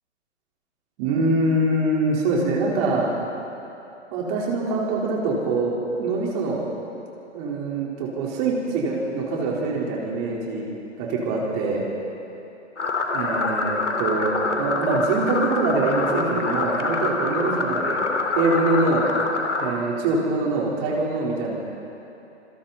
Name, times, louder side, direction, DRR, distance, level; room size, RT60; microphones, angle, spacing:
voice 1, 1.0-3.1 4.1-6.6 7.3-10.6 11.0-11.8 13.1-18.0 18.3-19.1 19.6-21.6, right 2 dB, 35° right, -3 dB, 4.3 m, -24 dB
sound 1, 12.8-19.7, left 3 dB, 80° left, 2.8 m, -25 dB
27.0 x 24.5 x 4.3 m, 2.9 s
figure-of-eight pair, 125°, 35 cm